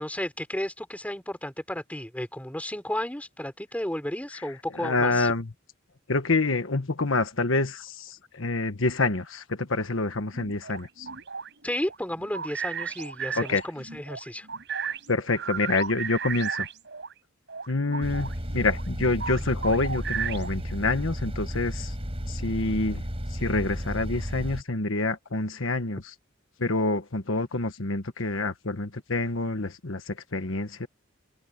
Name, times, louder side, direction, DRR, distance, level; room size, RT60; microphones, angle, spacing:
voice 1, 0.0-5.3 11.6-14.5, left 1 dB, 5° left, 4.5 m, -33 dB
voice 2, 4.7-5.5 6.1-11.1 13.3-13.6 15.1-16.7 17.7-21.9 22.2-23.0 23.3-26.0 26.6-30.9, left 3 dB, 75° left, 1.4 m, -27 dB
sound 1, 10.3-17.1 17.5-20.7, right 7 dB, 60° right, 8.0 m, -35 dB
sound 2, 18.0-24.6, equal, 30° right, 6.3 m, -33 dB
open air
head